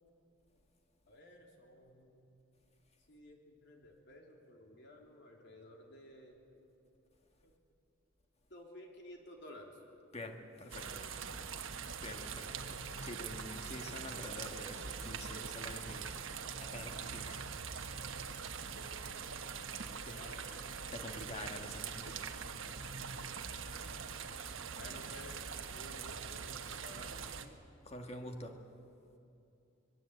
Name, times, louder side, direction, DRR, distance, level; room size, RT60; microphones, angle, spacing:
voice 1, 1.1-2.4 3.1-6.4 7.4-7.5 8.5-9.8 10.8-11.6 18.9-19.0 19.8-20.7 23.1-23.6 24.8-27.6, left 1 dB, 60° left, 3.5 m, -55 dB
voice 2, 10.1-11.0 12.0-16.2 16.6-17.6 18.0-18.5 19.7-20.2 20.9-22.3 25.0-25.1 27.8-28.8, left 1 dB, 30° left, 1.9 m, -47 dB
sound 1, 10.7-27.5, right 6 dB, 75° right, 1.2 m, -43 dB
25.0 x 20.5 x 8.2 m
head